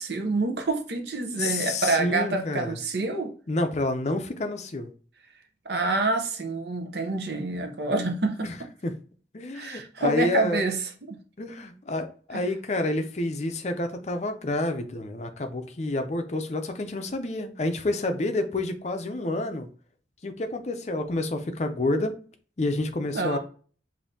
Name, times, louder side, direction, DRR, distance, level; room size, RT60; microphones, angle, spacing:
voice 1, 0.0-3.3 5.6-8.5 9.5-11.2 12.3-12.4 23.1-23.4, right 3 dB, 70° right, 0.7 m, -27 dB
voice 2, 1.3-2.8 3.5-4.9 8.4-8.5 8.8-8.9 9.3-10.7 11.4-19.7 20.2-22.1 22.6-23.4, left 2 dB, 40° left, 0.5 m, -29 dB
5.3 x 2.7 x 2.7 m
head